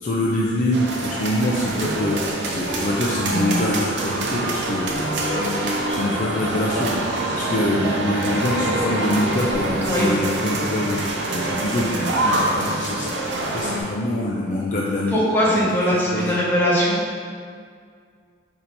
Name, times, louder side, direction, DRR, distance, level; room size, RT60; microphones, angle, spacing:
voice 1, 0.0-2.2 2.4-7.0 7.4-11.0 11.3-15.2 15.4-15.6 16.1-16.3, left 1 dB, 45° left, -4 dB, 0.4 m, -24 dB
sound 1, 0.7-13.8, right 2 dB, 75° right, 0.6 m, -25 dB
voice 2, 15.1-17.0, equal, 10° left, -8 dB, 1.0 m, -20 dB
4.2 x 2.7 x 4.5 m, 2.1 s
head